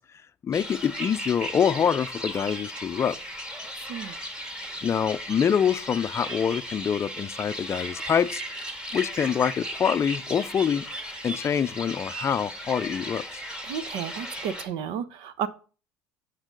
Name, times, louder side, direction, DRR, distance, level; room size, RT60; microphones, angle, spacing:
voice 1, 0.4-3.2 4.8-8.4 8.9-10.8 11.2-13.4, left 7 dB, 30° left, 0.5 m, -25 dB
sound 1, 0.5-14.6, equal, 10° right, 1.9 m, -36 dB
voice 2, 3.9-4.2 13.6-15.5, right 8 dB, 70° right, 0.9 m, -32 dB
8.8 x 6.8 x 3.9 m
supercardioid pair, 100°, 8 cm